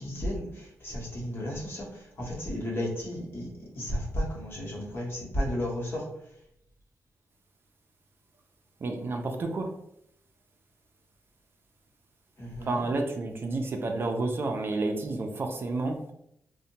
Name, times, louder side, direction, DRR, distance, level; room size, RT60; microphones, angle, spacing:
voice 1, 0.0-1.9 2.2-6.1 12.4-12.8, equal, 45° left, -3 dB, 0.9 m, -33 dB
voice 2, 8.8-9.7 12.6-16.0, right 2 dB, 45° right, 3 dB, 0.4 m, -30 dB
2.7 x 2.1 x 2.7 m, 0.75 s
cardioid pair, 105°, 5 cm